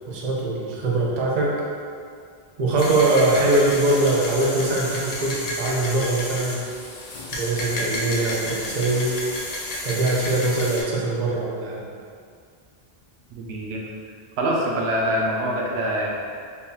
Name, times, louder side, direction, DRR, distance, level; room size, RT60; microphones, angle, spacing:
voice 1, 0.0-1.6 2.6-6.6 7.3-9.2 9.8-11.9, right 2 dB, 50° right, -4 dB, 0.7 m, -22 dB
sound 1, 2.8-10.8, left 1 dB, 50° left, 0.6 m, -31 dB
voice 2, 13.3-13.8 14.4-16.1, right 1 dB, 90° right, -2 dB, 0.9 m, -24 dB
3.8 x 2.7 x 2.7 m, 2.2 s
omnidirectional pair, 1.1 m